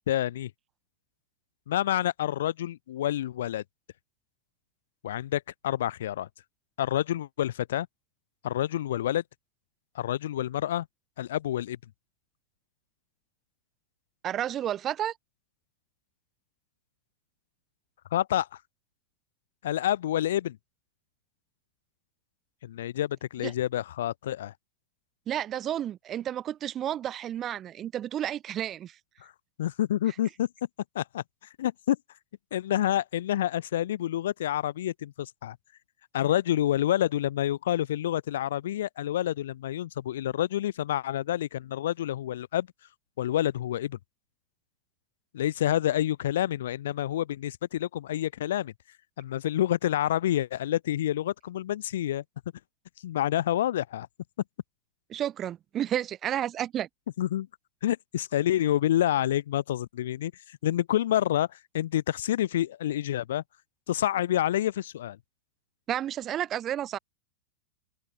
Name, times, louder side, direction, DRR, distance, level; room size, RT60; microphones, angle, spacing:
voice 1, 0.1-0.5 1.7-3.6 5.0-6.3 6.8-7.9 8.4-9.2 9.9-10.9 11.2-11.8 18.1-18.5 19.6-20.6 22.6-24.5 29.6-30.5 30.9-31.2 31.6-32.0 32.5-35.6 36.1-42.7 43.2-44.0 45.3-48.7 49.2-52.2 53.0-54.1 57.2-57.5 57.8-63.4 63.9-65.2, left 12 dB, 70° left, 0.9 m, -28 dB
voice 2, 14.2-15.1 23.4-23.5 25.3-29.0 55.1-56.9 65.9-67.0, right 11 dB, 35° right, 1.8 m, -31 dB
open air
hypercardioid pair, 95°, 0 cm